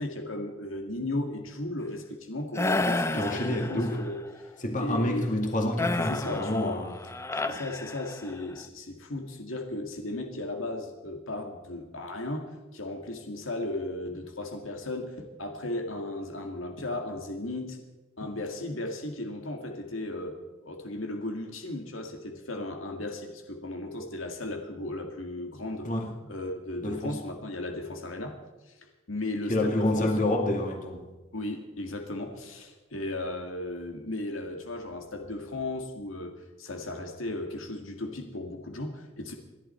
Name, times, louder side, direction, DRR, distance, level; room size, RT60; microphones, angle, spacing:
voice 1, 0.0-4.2 4.8-5.4 6.1-6.8 7.4-17.8 18.2-20.4 20.6-25.9 26.3-28.4 28.7-28.8 29.1-30.1 31.3-36.3 36.6-39.3, left 2 dB, 80° left, 3 dB, 2.0 m, -35 dB
sound 1, 2.6-4.1 5.8-8.4, left 2 dB, 15° left, 0.6 m, -31 dB
voice 2, 3.1-4.0 4.6-6.9 25.8-26.1 26.8-27.2 29.5-31.1, left 1 dB, 40° left, 2 dB, 2.1 m, -28 dB
28.0 x 11.5 x 4.4 m, 1.1 s
head